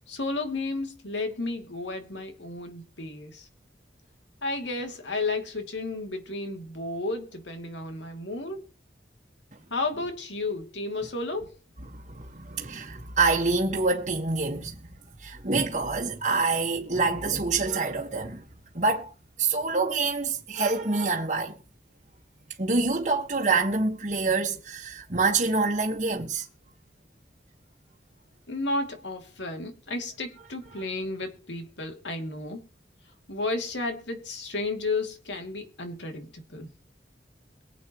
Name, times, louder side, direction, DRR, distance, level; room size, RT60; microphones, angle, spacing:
voice 1, 0.1-3.5 4.4-8.7 9.7-11.6 28.5-32.6 33.3-36.7, left 2 dB, 90° left, 2.8 m, -32 dB
voice 2, 11.9-14.9 15.2-18.4 18.7-19.1 19.4-21.6 22.6-26.5 30.7-30.8, right 3 dB, 40° right, 1.5 m, -26 dB
23.0 x 8.5 x 3.1 m
head